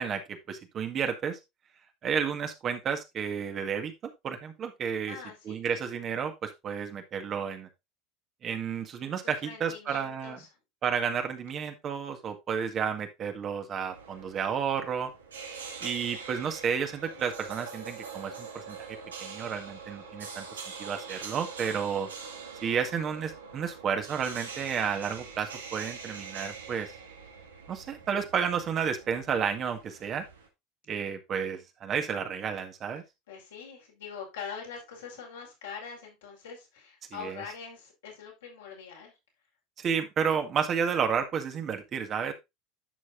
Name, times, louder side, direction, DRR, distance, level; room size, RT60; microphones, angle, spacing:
voice 1, 0.0-1.4 2.0-5.2 5.5-7.7 8.4-10.4 10.8-15.1 15.8-18.8 19.2-22.1 22.6-26.9 27.7-30.2 30.9-33.0 37.1-37.4 39.8-42.3, right 7 dB, 40° right, 1.8 m, -31 dB
voice 2, 5.1-5.7 9.2-10.5 33.3-39.1, left 6 dB, 80° left, 5.1 m, -43 dB
sound 1, 13.8-30.5, right 5 dB, 90° right, 1.8 m, -44 dB
11.0 x 6.4 x 2.6 m
hypercardioid pair, 80°, 0 cm